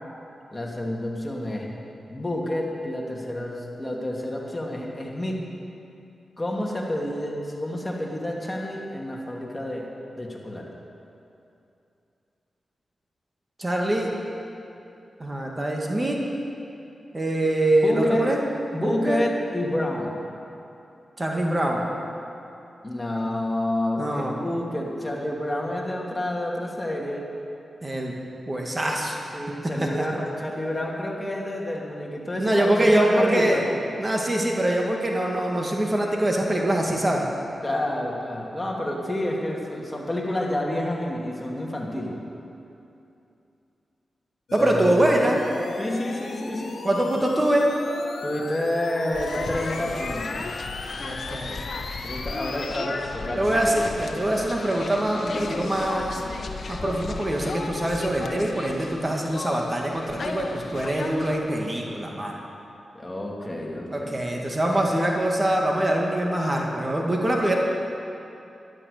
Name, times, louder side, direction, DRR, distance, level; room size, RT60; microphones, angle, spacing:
voice 1, 0.5-1.7 2.1-5.4 6.4-9.9 10.2-10.7 17.8-18.3 18.7-20.1 22.8-27.2 29.3-33.6 37.6-42.2 44.6-44.9 45.8-46.8 48.2-50.5 52.0-53.6 56.8-57.0 62.9-64.2, left 1 dB, 20° left, -2 dB, 2.7 m, -29 dB
voice 2, 13.6-14.1 15.2-16.2 17.1-18.4 18.7-19.3 21.2-21.8 24.0-24.4 27.8-28.2 28.5-29.2 29.6-30.1 32.4-33.6 34.0-37.2 44.5-45.4 46.8-47.7 51.0-51.6 53.3-56.2 56.7-62.3 63.9-67.6, right 1 dB, 30° right, -1 dB, 2.1 m, -24 dB
sound 1, 44.5-52.9, left 4 dB, 80° left, 1.2 m, -37 dB
sound 2, 49.1-61.4, left 3 dB, 65° left, 1.1 m, -35 dB
13.0 x 12.0 x 6.7 m, 2.7 s
cardioid pair, 55°, 0 cm